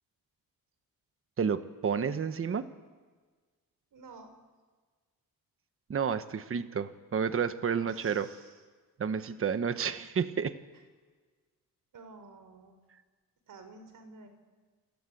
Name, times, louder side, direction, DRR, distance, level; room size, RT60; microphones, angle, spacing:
voice 1, 1.4-2.7 5.9-8.3 9.0-10.6, right 6 dB, 35° right, 11 dB, 1.2 m, -30 dB
voice 2, 3.9-4.3 7.8-8.6 10.7-10.8 11.9-12.8 13.5-14.3, right 3 dB, 60° right, 8 dB, 4.8 m, -51 dB
28.5 x 24.0 x 8.5 m, 1.4 s
wide cardioid pair, 150°, 36 cm